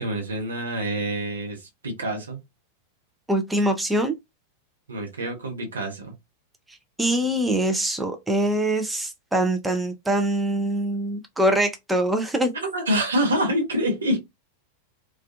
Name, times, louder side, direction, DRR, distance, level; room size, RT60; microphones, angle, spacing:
voice 1, 0.0-2.4 4.9-6.1 12.6-14.2, right 1 dB, 70° right, 0.8 m, -26 dB
voice 2, 3.3-4.1 7.0-12.5, right 1 dB, 5° right, 0.4 m, -23 dB
2.4 x 2.3 x 2.5 m
figure-of-eight pair, 90°, 0 cm